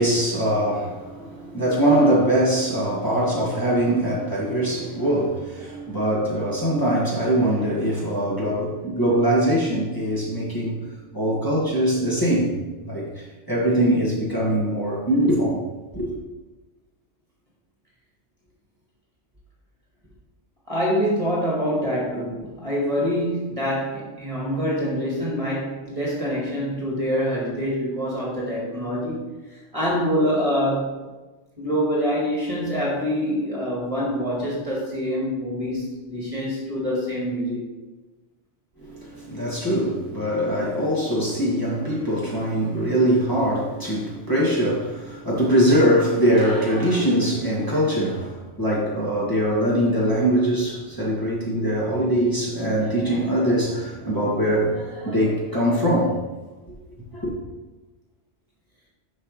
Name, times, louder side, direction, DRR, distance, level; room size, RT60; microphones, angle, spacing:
voice 1, 0.0-15.6 15.9-16.1 38.8-56.2 57.1-57.3, right 1 dB, 15° left, 2.2 m, -22 dB
voice 2, 20.7-31.0 31.6-37.6, equal, 30° right, 2.1 m, -25 dB
11.0 x 5.9 x 3.3 m
omnidirectional pair, 1.2 m